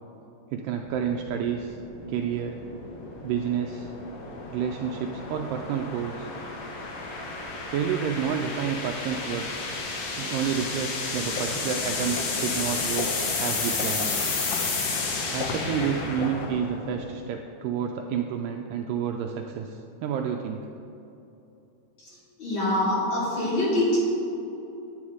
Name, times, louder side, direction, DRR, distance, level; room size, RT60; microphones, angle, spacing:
voice 1, 0.5-1.8 2.1-2.6 3.2-3.9 4.5-6.3 7.7-9.7 10.2-14.1 15.3-20.7, right 7 dB, 80° right, 3 dB, 2.0 m, -30 dB
sound 1, 0.9-17.1, left 3 dB, 60° left, 1.7 m, -32 dB
sound 2, 11.3-16.5, left 4 dB, 75° left, 2.0 m, -36 dB
voice 2, 22.0-24.0, left 1 dB, 35° left, -8 dB, 2.9 m, -25 dB
10.0 x 8.8 x 4.8 m, 2.9 s
omnidirectional pair, 4.3 m